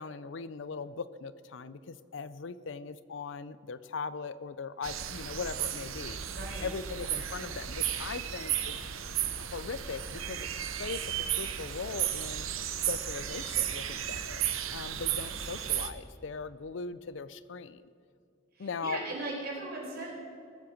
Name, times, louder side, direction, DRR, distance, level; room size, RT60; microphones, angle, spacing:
voice 1, 0.0-6.2 6.6-8.9 9.4-10.5 10.8-12.5 12.8-14.4 14.7-17.8 18.6-19.0, left 5 dB, 65° left, 16 dB, 0.5 m, -39 dB
sound 1, 4.8-15.9, right 10 dB, 90° right, 0.9 m, -34 dB
voice 2, 6.3-6.7 18.6-20.1, right 2 dB, 50° right, -2 dB, 4.3 m, -38 dB
19.0 x 7.7 x 7.1 m, 2.3 s
head